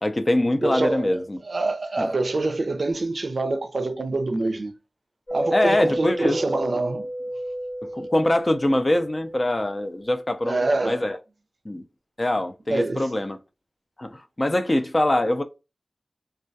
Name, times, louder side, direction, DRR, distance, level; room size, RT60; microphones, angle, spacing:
voice 1, 0.0-1.4 2.0-2.1 5.5-6.4 7.8-11.2 11.7-11.8 12.2-13.4 14.0-15.4, left 1 dB, 35° left, 0.4 m, -23 dB
voice 2, 0.6-1.1 1.4-4.7 5.3-7.1 10.4-11.0 12.7-13.1, right 2 dB, 65° right, 0.4 m, -25 dB
sound 1, 5.3-9.6, right 1 dB, 70° left, 1.1 m, -30 dB
2.2 x 2.2 x 2.6 m
cardioid pair, 45°, 0 cm